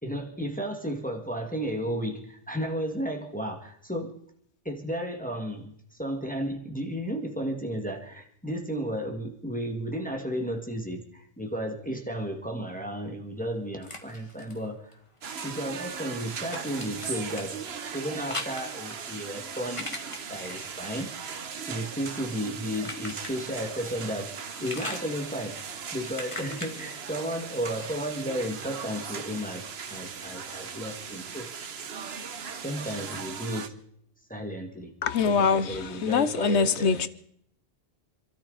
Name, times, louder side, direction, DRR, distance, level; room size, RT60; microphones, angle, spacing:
voice 1, 0.0-4.2 4.6-15.0 15.4-17.6 17.9-20.0 20.3-21.1 21.7-25.6 25.9-31.5 32.6-33.8 34.3-34.9 35.2-37.1, equal, 5° left, 1.9 m, -33 dB
sound 1, 13.4-15.5 15.8-23.9 24.2-28.2, left 2 dB, 25° left, 1.9 m, -42 dB
sound 2, 15.2-33.7, right 6 dB, 65° right, 1.2 m, -39 dB
voice 2, 35.0-37.1, left 5 dB, 80° left, 1.1 m, -24 dB
27.0 x 13.0 x 4.0 m
omnidirectional pair, 1.2 m